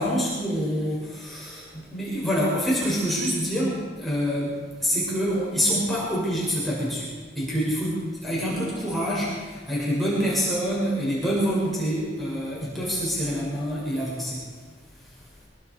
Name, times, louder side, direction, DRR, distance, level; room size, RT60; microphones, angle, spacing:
voice 1, 0.0-14.4, equal, ahead, -7 dB, 7.2 m, -26 dB
25.5 x 23.0 x 5.0 m, 1.5 s
head